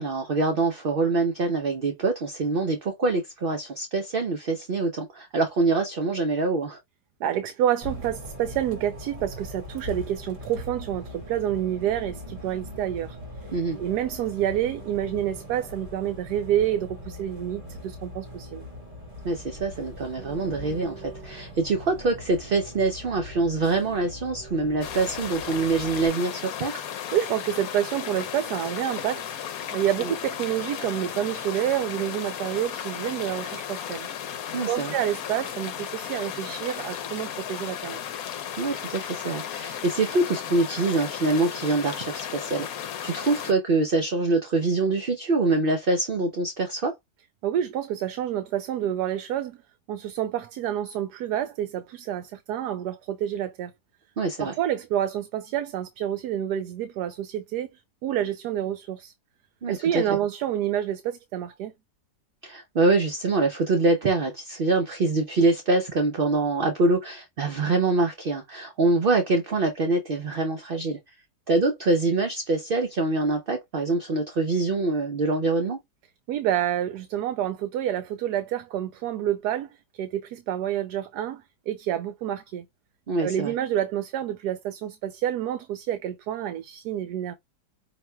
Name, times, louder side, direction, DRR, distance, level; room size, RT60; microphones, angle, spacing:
voice 1, 0.0-6.8 13.5-13.8 19.2-26.8 30.0-30.1 34.5-34.9 38.6-42.7 43.0-46.9 54.2-54.5 59.6-60.0 62.4-71.0 71.5-75.8 83.1-83.5, right 3 dB, 55° right, 0.6 m, -25 dB
voice 2, 7.2-13.2 13.8-18.6 27.1-29.3 29.7-34.1 34.7-38.0 47.4-49.6 49.9-53.7 54.4-57.7 58.0-59.1 59.7-61.7 76.3-79.7 80.0-82.6 83.2-87.3, right 11 dB, 80° right, 1.1 m, -28 dB
Bus, 7.8-26.1, left 1 dB, 30° right, 1.9 m, -41 dB
sound 1, 24.8-43.5, left 9 dB, 65° left, 1.1 m, -35 dB
5.8 x 2.9 x 2.2 m
omnidirectional pair, 1.7 m